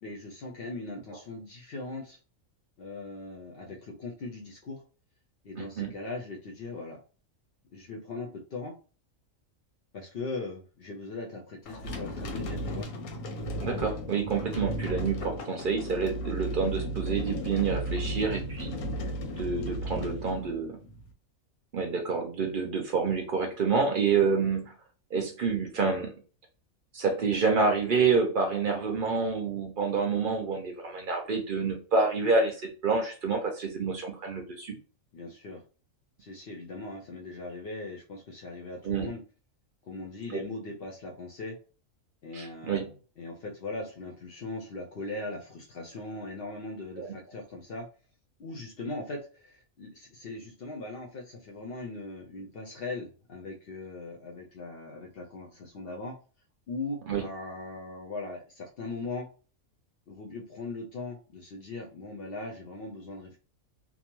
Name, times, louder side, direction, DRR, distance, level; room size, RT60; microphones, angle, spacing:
voice 1, 0.0-2.2 2.8-4.8 5.4-7.0 7.7-8.7 9.9-12.9 35.1-35.6 36.2-39.2 39.8-41.6 42.2-47.9 48.4-56.1 56.7-59.3 60.1-63.4, left 2 dB, 60° left, 0 dB, 0.6 m, -39 dB
voice 2, 5.6-5.9 13.6-18.8 19.3-20.8 21.7-24.7 25.1-26.2 26.9-34.8 38.8-39.1 40.3-40.4 42.3-42.9 47.0-47.1 57.1-57.3, right 4 dB, 55° right, 3 dB, 0.6 m, -28 dB
sound 1, 11.7-21.1, equal, 85° left, 1.1 m, -35 dB
2.7 x 2.1 x 2.9 m, 0.36 s
omnidirectional pair, 1.5 m